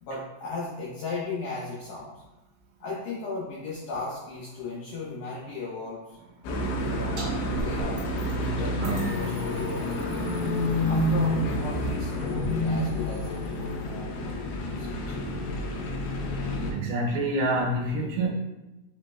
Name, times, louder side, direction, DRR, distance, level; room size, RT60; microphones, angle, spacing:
voice 1, 0.0-2.1 2.8-6.2 6.8-8.0 8.3-10.3 10.9-14.2 14.5-15.2, left 3 dB, 70° left, -7 dB, 2.3 m, -36 dB
sound 1, 6.4-16.7, left 1 dB, 90° left, 1.9 m, -28 dB
sound 2, 7.2-7.3 7.5-8.4 8.8-13.9, right 2 dB, 55° right, 1.9 m, -44 dB
voice 2, 16.7-18.3, right 1 dB, 75° right, -1 dB, 2.7 m, -27 dB
5.6 x 3.8 x 2.2 m, 1.0 s
omnidirectional pair, 4.8 m